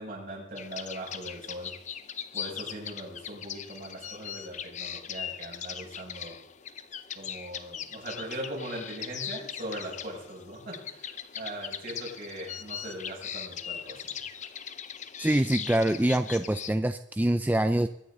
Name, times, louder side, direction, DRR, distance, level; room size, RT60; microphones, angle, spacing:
voice 1, 0.0-1.7 2.3-6.4 7.1-14.1, right 1 dB, 50° right, -2 dB, 6.6 m, -40 dB
sound 1, 0.6-16.7, left 8 dB, 40° left, 0.7 m, -40 dB
voice 2, 15.2-17.9, right 1 dB, 10° right, 9 dB, 0.4 m, -25 dB
23.0 x 9.8 x 3.9 m, 0.82 s
head